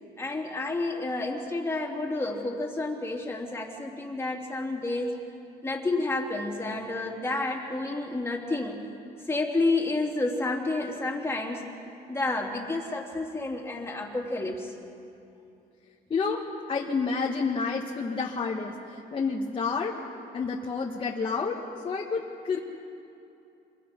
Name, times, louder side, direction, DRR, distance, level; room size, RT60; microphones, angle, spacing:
voice 1, 0.2-5.1 5.6-8.8 9.3-11.7 12.1-14.7, left 2 dB, 15° left, -1 dB, 3.3 m, -30 dB
voice 2, 16.1-16.4 16.7-20.0 20.3-21.6 21.8-22.6, left 4 dB, 30° left, -2 dB, 1.7 m, -29 dB
27.0 x 22.0 x 5.4 m, 2.7 s
cardioid pair, 110°, 17 cm